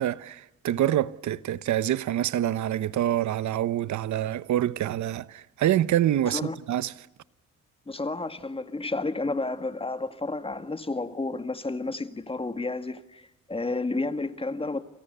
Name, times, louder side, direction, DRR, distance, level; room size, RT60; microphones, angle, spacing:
voice 1, 0.0-6.9, right 12 dB, 70° right, 1.1 m, -26 dB
voice 2, 7.9-13.2 13.5-14.8, left 3 dB, 20° left, 2.1 m, -31 dB
29.0 x 28.0 x 6.9 m
cardioid pair, 90°, 30 cm